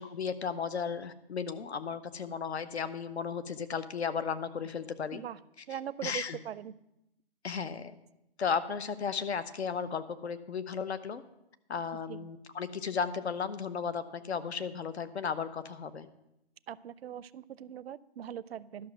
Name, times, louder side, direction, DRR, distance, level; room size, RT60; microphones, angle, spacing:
voice 1, 0.0-5.2 6.0-6.4 7.4-7.9 8.4-11.2 11.7-16.1, left 6 dB, 90° left, 12 dB, 0.9 m, -35 dB
voice 2, 5.7-6.7 12.1-12.3 16.7-18.9, right 10 dB, 70° right, 18 dB, 0.5 m, -41 dB
12.0 x 6.1 x 6.0 m, 0.86 s
hypercardioid pair, 155°, 32 cm